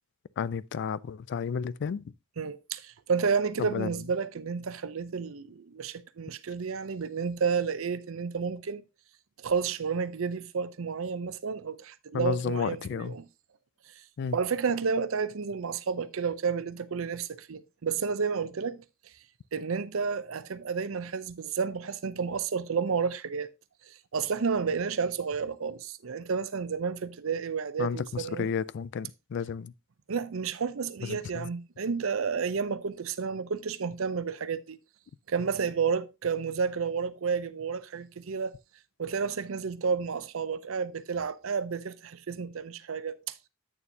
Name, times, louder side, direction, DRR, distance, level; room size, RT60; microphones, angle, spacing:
voice 1, 0.4-2.0 3.6-3.9 12.1-13.1 14.2-14.3 27.8-29.7 31.1-31.5, left 6 dB, 55° left, 0.3 m, -32 dB
voice 2, 2.4-8.8 9.4-13.3 13.9-14.0 14.3-19.1 19.5-23.5 23.9-28.5 30.1-34.8 35.3-38.5 39.0-43.4, right 5 dB, 70° right, 0.6 m, -31 dB
8.6 x 6.9 x 2.8 m
head